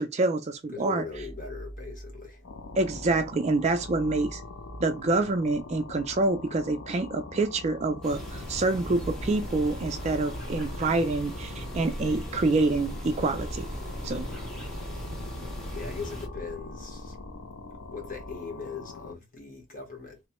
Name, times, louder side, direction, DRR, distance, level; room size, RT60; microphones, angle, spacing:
voice 1, 0.0-1.0 2.8-4.4 4.8-13.7 14.0-14.3, right 3 dB, 35° right, 0.3 m, -27 dB
voice 2, 0.7-2.4 14.3-14.6 15.7-17.2 17.9-20.2, left 4 dB, 40° left, 1.1 m, -40 dB
sound 1, 1.0-18.4, equal, 60° left, 1.4 m, -43 dB
sound 2, 2.4-19.2, left 4 dB, 85° left, 0.5 m, -44 dB
sound 3, 8.0-16.3, equal, 5° left, 0.7 m, -40 dB
3.0 x 2.1 x 2.9 m
head